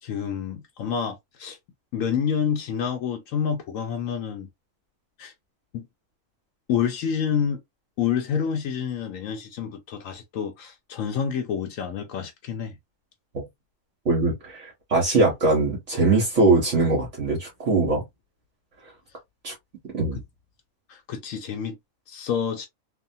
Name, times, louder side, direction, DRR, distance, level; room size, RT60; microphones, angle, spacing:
voice 1, 0.0-1.6 1.9-4.5 5.2-5.3 5.7-5.9 6.7-7.6 8.0-12.8 20.9-21.8 22.1-22.7, left 7 dB, 80° left, 1.0 m, -28 dB
voice 2, 14.0-18.0 19.4-19.5 19.9-20.2, right 3 dB, 65° right, 1.5 m, -22 dB
3.4 x 2.1 x 2.6 m
omnidirectional pair, 1.4 m